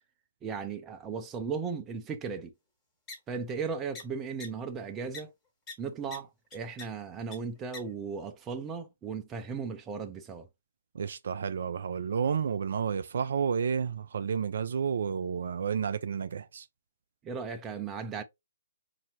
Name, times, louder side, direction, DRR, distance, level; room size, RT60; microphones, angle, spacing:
voice 1, 0.4-2.5 3.3-5.3 5.8-10.5 17.2-18.2, right 5 dB, 15° right, 0.6 m, -36 dB
sound 1, 3.1-3.2 4.0-4.1 4.4-4.5 5.1-5.2 5.7-5.8 6.1-6.2 6.5-6.8 7.3-7.4 7.7-7.8, left 4 dB, 20° left, 1.6 m, -41 dB
voice 2, 10.9-16.7, right 7 dB, 60° right, 0.4 m, -31 dB
4.8 x 2.7 x 2.9 m
figure-of-eight pair, 135°, 0 cm